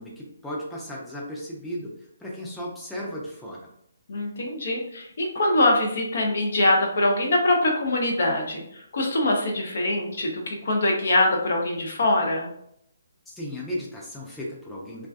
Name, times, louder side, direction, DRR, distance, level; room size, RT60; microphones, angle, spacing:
voice 1, 0.0-1.9 2.2-3.7 13.3-15.1, equal, 5° left, -5 dB, 0.5 m, -35 dB
voice 2, 4.1-12.5, left 1 dB, 60° left, 1 dB, 0.6 m, -23 dB
2.4 x 2.3 x 2.4 m, 0.73 s
figure-of-eight pair, 140°, 0 cm